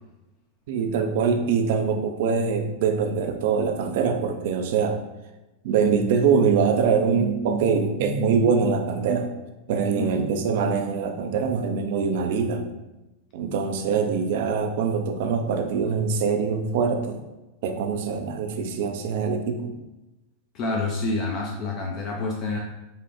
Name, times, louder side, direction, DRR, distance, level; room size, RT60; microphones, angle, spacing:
voice 1, 0.7-5.0 5.6-9.3 9.7-12.6 13.3-17.2 17.6-19.7, right 5 dB, 50° right, 5 dB, 0.3 m, -23 dB
voice 2, 20.5-22.6, left 3 dB, 35° left, 0 dB, 0.4 m, -28 dB
3.1 x 2.1 x 3.0 m, 1.0 s
figure-of-eight pair, 90°, 0 cm